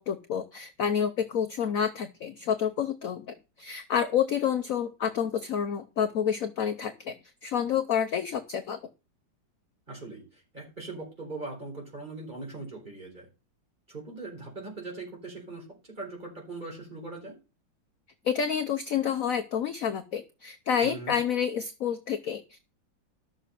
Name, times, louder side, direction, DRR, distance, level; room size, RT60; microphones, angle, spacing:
voice 1, 0.0-7.1 7.4-8.8 18.2-22.6, left 8 dB, 60° left, 8 dB, 1.0 m, -29 dB
voice 2, 9.9-10.2 10.5-13.3 13.9-17.3 20.8-21.2, right 3 dB, 20° right, -1 dB, 4.9 m, -40 dB
12.5 x 6.7 x 5.8 m, 0.31 s
omnidirectional pair, 2.1 m